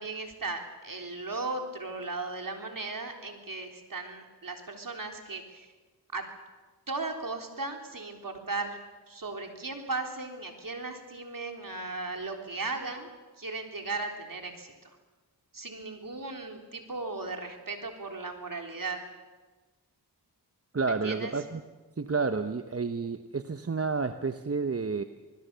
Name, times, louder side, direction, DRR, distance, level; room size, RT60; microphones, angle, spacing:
voice 1, 0.0-5.7 6.1-6.3 6.9-8.8 9.1-14.9 15.5-19.0 21.0-21.3, right 3 dB, 55° right, 4 dB, 3.8 m, -36 dB
voice 2, 20.7-21.6 22.0-25.0, right 4 dB, 35° right, 9 dB, 1.0 m, -30 dB
27.0 x 20.5 x 6.9 m, 1.3 s
cardioid pair, 45°, 40 cm